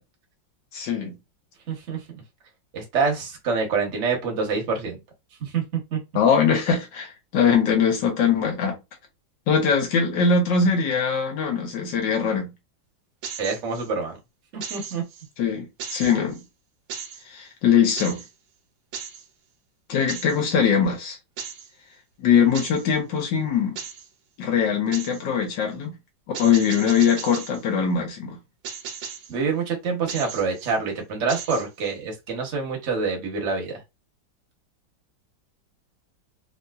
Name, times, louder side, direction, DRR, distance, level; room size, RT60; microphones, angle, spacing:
voice 1, 0.7-1.1 6.1-8.7 9.5-12.5 15.4-16.4 17.3-18.2 19.9-21.2 22.2-23.8 24.4-26.0 26.4-28.4, left 6 dB, 70° left, 1.6 m, -21 dB
voice 2, 1.7-2.0 2.7-5.0 5.4-6.0 13.4-14.2 14.5-15.0 29.3-33.7, right 5 dB, 45° right, 1.1 m, -26 dB
sound 1, 13.2-13.9 14.6-15.3 15.8-16.4 16.9-17.2 18.0-18.3 18.9-19.2 20.1-20.4 21.4-21.7 22.5-22.9 23.8-24.1 24.9-25.2 26.3-27.6 28.6-29.3 30.1-30.8 31.3-31.9, right 6 dB, 75° right, 1.4 m, -36 dB
3.6 x 2.8 x 2.3 m
omnidirectional pair, 2.1 m